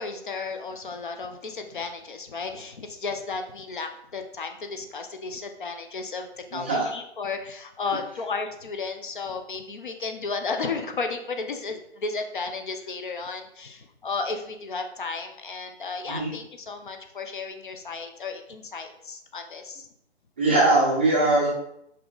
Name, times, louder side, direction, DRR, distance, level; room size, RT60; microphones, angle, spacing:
voice 1, 0.0-19.9, left 4 dB, 50° left, 6 dB, 0.8 m, -33 dB
voice 2, 6.5-6.9 16.1-16.3 20.4-21.5, right 2 dB, 10° right, -6 dB, 0.6 m, -21 dB
5.7 x 4.9 x 3.9 m, 0.76 s
hypercardioid pair, 160°, 33 cm